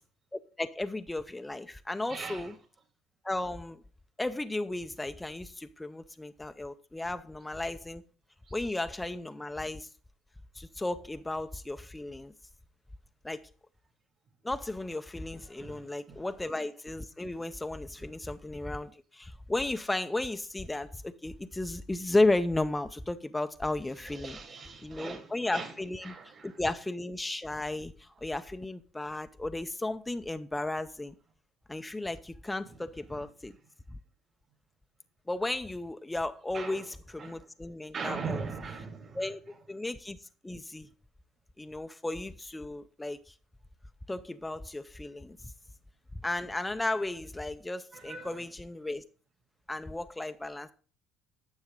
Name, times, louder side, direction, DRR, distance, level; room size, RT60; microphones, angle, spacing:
voice 1, 0.3-2.6 3.2-3.8 4.2-8.0 8.5-9.9 10.6-12.3 13.2-13.4 14.4-24.4 24.8-26.1 26.4-31.1 31.7-33.5 35.3-38.4 39.1-39.4 39.7-40.2 40.4-40.9 41.6-43.3 44.1-45.4 46.2-49.0 49.7-50.7, left 2 dB, 10° left, 0.4 m, -34 dB
voice 2, 2.1-2.5 15.5-15.8 16.1-16.2 24.2-25.3 25.5-25.7 26.1-26.5 36.5-36.8 37.2-37.3 37.9-39.2 47.9-48.3, right 5 dB, 40° right, 2.2 m, -39 dB
9.5 x 6.3 x 3.7 m
supercardioid pair, 80°, 0 cm